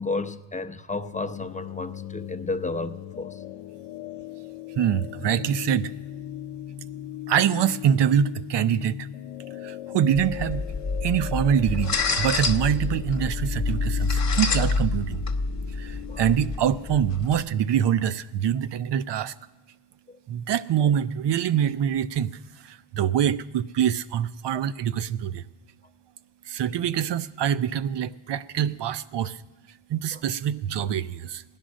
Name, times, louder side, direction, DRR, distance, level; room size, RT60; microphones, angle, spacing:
voice 1, 0.0-3.4 16.1-16.2 20.1-20.2 24.5-24.6 30.1-30.2, left 3 dB, 15° left, 0.7 m, -32 dB
sound 1, 1.1-17.1, left 12 dB, 85° left, 0.6 m, -39 dB
voice 2, 4.8-5.9 7.3-9.1 9.6-10.7 11.0-15.2 15.8-19.3 20.3-22.3 22.6-25.4 26.5-29.4 29.9-31.4, right 9 dB, 60° right, 0.7 m, -25 dB
sound 2, 10.1-17.4, left 4 dB, 35° left, 1.1 m, -27 dB
16.5 x 10.5 x 6.3 m
cardioid pair, 75°, 48 cm